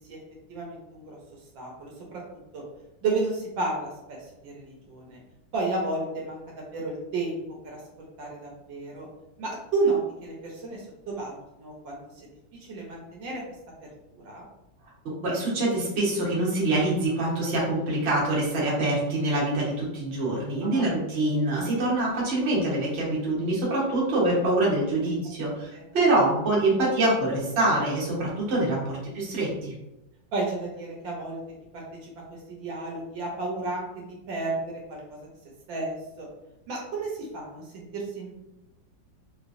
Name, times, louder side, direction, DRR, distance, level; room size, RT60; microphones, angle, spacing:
voice 1, 0.5-1.2 1.5-2.2 2.5-2.6 3.0-4.2 4.4-5.2 5.5-6.4 6.7-7.8 8.2-9.1 9.4-12.3 12.6-13.4 14.1-14.4 20.6-20.9 25.7-25.8 30.3-31.4 31.7-32.1 32.5-35.0 35.7-36.3 36.7-38.3, right 3 dB, 75° right, -2 dB, 1.5 m, -32 dB
voice 2, 15.0-29.7, right 2 dB, 40° right, -5 dB, 1.1 m, -25 dB
3.2 x 3.0 x 2.5 m, 0.91 s
omnidirectional pair, 2.1 m